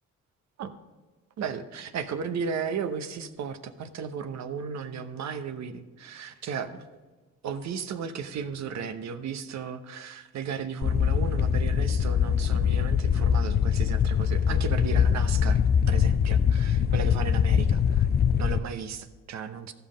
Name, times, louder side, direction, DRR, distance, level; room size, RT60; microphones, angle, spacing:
voice 1, 1.4-6.8 7.4-15.6 15.9-18.1 18.4-19.7, right 6 dB, 65° right, 10 dB, 0.9 m, -35 dB
sound 1, 10.8-18.6, left 8 dB, 35° left, 0.4 m, -23 dB
14.5 x 5.7 x 5.1 m, 1.3 s
cardioid pair, 90°, 30 cm